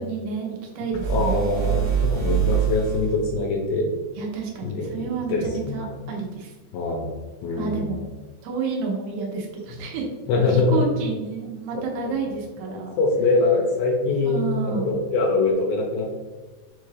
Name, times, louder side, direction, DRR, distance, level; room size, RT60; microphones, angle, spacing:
voice 1, 0.0-1.7 4.2-6.5 7.6-8.0 8.4-10.1 10.4-13.0 14.2-14.9, right 5 dB, 85° right, -1 dB, 2.8 m, -30 dB
sound 1, 0.9-3.3, right 9 dB, 65° right, 2.0 m, -24 dB
voice 2, 1.1-3.9 4.6-4.9 5.3-5.9 6.7-7.1 7.4-8.0 10.3-10.8 11.7-11.8 12.7-16.1, left 3 dB, 85° left, -1 dB, 2.4 m, -23 dB
6.2 x 2.4 x 3.2 m, 1.4 s
omnidirectional pair, 4.6 m